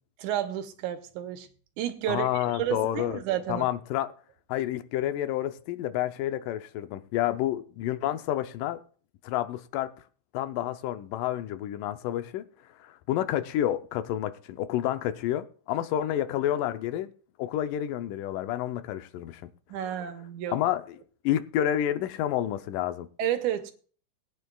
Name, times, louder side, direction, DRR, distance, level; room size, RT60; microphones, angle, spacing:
voice 1, 0.2-1.5 1.8-3.7 19.7-20.6 23.2-23.7, right 11 dB, 75° right, 2.2 m, -31 dB
voice 2, 2.1-3.2 3.5-4.1 4.5-8.8 9.2-9.9 10.3-12.4 12.8-17.1 17.4-19.4 20.5-21.0 21.2-23.1, left 12 dB, 85° left, 2.3 m, -29 dB
20.0 x 9.2 x 2.3 m
omnidirectional pair, 3.7 m